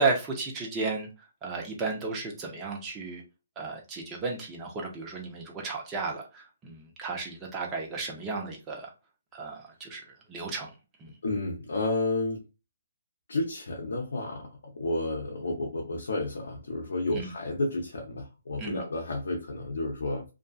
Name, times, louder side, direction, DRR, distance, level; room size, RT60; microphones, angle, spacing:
voice 1, 0.0-3.2 3.6-8.9 9.3-11.1 17.1-17.3 18.6-18.8, right 3 dB, 15° right, 0 dB, 0.7 m, -33 dB
voice 2, 11.2-12.4 13.3-20.2, left 2 dB, 70° left, 0 dB, 0.6 m, -31 dB
2.5 x 2.3 x 2.3 m, 0.30 s
hypercardioid pair, 150°, 0 cm